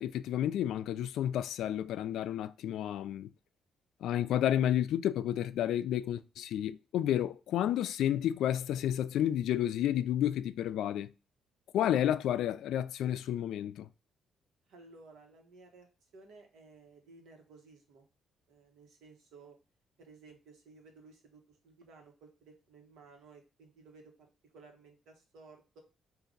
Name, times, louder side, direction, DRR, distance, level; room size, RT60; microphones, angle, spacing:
voice 1, 0.0-3.3 4.0-11.1 11.7-13.9, left 11 dB, 80° left, 0.3 m, -31 dB
voice 2, 14.7-15.9 16.1-18.0 18.5-19.5 20.0-24.1 24.5-25.8, right 3 dB, 85° right, 1.3 m, -56 dB
4.8 x 2.5 x 3.9 m
cardioid pair, 130°, 0 cm